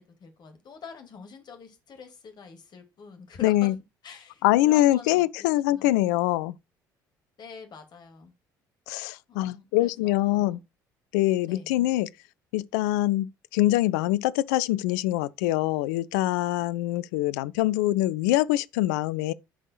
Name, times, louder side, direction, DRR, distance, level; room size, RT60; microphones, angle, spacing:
voice 1, 0.0-3.7 4.0-6.0 7.4-8.3 9.3-10.6 11.5-11.7, left 5 dB, 45° left, 2.3 m, -46 dB
voice 2, 3.4-3.7 4.4-6.5 8.9-10.6 11.1-12.1 12.5-19.3, left 16 dB, 65° left, 0.4 m, -24 dB
14.0 x 5.5 x 2.3 m
figure-of-eight pair, 55°, 10 cm